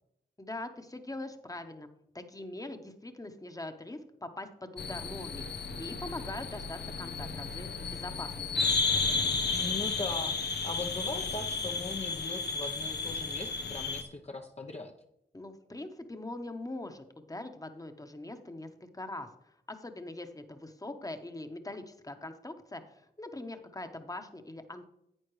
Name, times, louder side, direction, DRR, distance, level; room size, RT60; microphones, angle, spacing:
voice 1, 0.4-8.5 15.3-24.9, left 2 dB, 20° left, 7 dB, 1.2 m, -42 dB
sound 1, 4.8-14.0, left 4 dB, 70° left, 0.9 m, -33 dB
voice 2, 9.5-10.3 10.6-14.9, left 2 dB, 35° left, 2 dB, 0.9 m, -39 dB
11.0 x 8.6 x 3.3 m, 0.80 s
cardioid pair, 45°, 18 cm